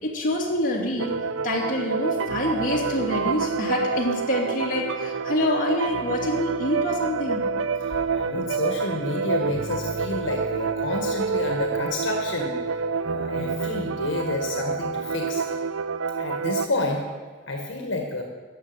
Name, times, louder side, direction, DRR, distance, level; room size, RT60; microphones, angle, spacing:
voice 1, 0.0-1.2 1.4-7.5 7.9-8.0, left 1 dB, 45° left, -3 dB, 2.6 m, -26 dB
sound 1, 1.0-16.7, right 5 dB, 85° right, 0.4 m, -28 dB
voice 2, 7.8-12.8 13.0-15.6 16.2-17.1 17.5-18.2, left 2 dB, 75° left, 2 dB, 1.7 m, -29 dB
14.5 x 6.4 x 9.5 m, 1.4 s
head